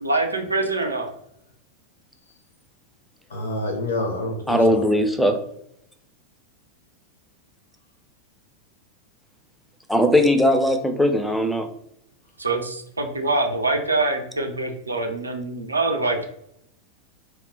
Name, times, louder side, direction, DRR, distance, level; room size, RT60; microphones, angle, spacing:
voice 1, 0.0-1.1 12.4-16.3, right 2 dB, 80° right, 4 dB, 0.4 m, -24 dB
voice 2, 3.3-4.8, left 1 dB, 65° left, 1 dB, 0.4 m, -27 dB
voice 3, 4.5-5.4 9.9-11.7, equal, ahead, 5 dB, 0.3 m, -19 dB
2.1 x 2.0 x 3.6 m, 0.76 s
figure-of-eight pair, 90°, 0 cm